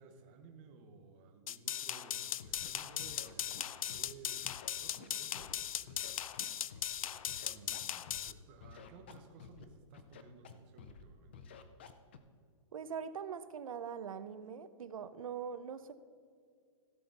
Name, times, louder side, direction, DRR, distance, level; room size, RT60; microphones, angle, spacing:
voice 1, 0.0-4.5 4.8-6.2 7.0-11.4, right 4 dB, 20° right, 4 dB, 0.7 m, -57 dB
sound 1, 1.5-8.3, left 10 dB, 85° left, 0.5 m, -38 dB
Scratching (performance technique), 2.4-2.7 3.0-4.1 4.4-5.5 5.9-7.0 7.3-8.3 8.6-9.6 9.9-10.5 10.8-11.0 11.3-12.2, left 7 dB, 20° left, 0.3 m, -52 dB
voice 2, 12.7-15.9, right 7 dB, 80° right, 12 dB, 0.7 m, -42 dB
16.0 x 7.1 x 4.0 m, 2.1 s
hypercardioid pair, 180°, 17 cm